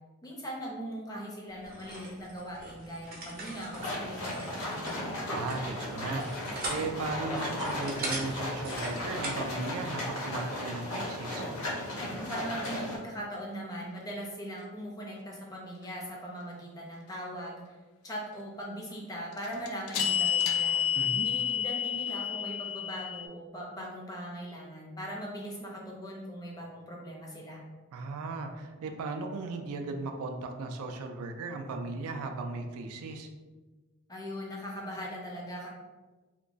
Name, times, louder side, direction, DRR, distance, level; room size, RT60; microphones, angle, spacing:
voice 1, 0.2-5.1 12.3-17.8 18.0-20.8 21.2-27.6 34.1-35.7, equal, 15° left, -2 dB, 0.5 m, -40 dB
sound 1, 1.6-9.5, right 2 dB, 45° right, 0.6 m, -41 dB
sound 2, 3.7-13.0, left 1 dB, 70° left, 0.8 m, -36 dB
voice 2, 5.3-11.4 20.9-21.3 27.9-33.3, right 3 dB, 85° right, 5 dB, 0.3 m, -36 dB
sound 3, 9.0-9.1 19.3-23.3, left 9 dB, 85° left, 0.3 m, -29 dB
2.8 x 2.3 x 2.5 m, 1.3 s
head